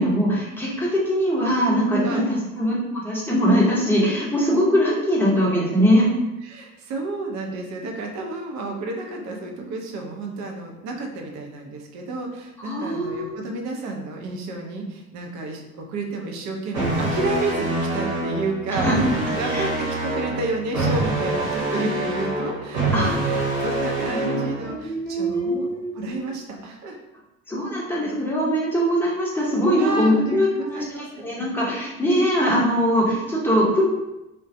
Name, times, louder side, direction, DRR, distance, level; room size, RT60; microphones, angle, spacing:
voice 1, 0.0-2.2 2.6-6.1 12.6-13.4 18.8-18.9 19.5-19.7 22.9-23.1 24.1-26.3 27.5-33.8, equal, 5° left, -5 dB, 0.8 m, -22 dB
voice 2, 6.4-25.7 25.9-27.0 29.8-31.2, right 2 dB, 45° right, 1 dB, 0.6 m, -31 dB
sound 1, 16.7-24.7, right 2 dB, 70° right, 1.0 m, -25 dB
2.3 x 2.2 x 2.6 m, 0.97 s
figure-of-eight pair, 55°, 40 cm